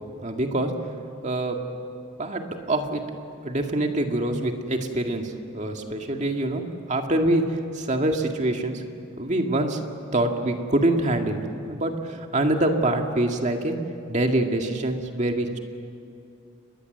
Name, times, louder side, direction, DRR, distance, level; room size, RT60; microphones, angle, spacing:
voice 1, 0.2-0.7 1.2-1.6 2.2-3.0 3.4-6.6 6.9-8.8 9.2-9.8 10.1-11.4 11.7-13.8 14.1-15.6, right 1 dB, 35° right, 3 dB, 2.0 m, -25 dB
29.0 x 21.5 x 8.0 m, 2.5 s
head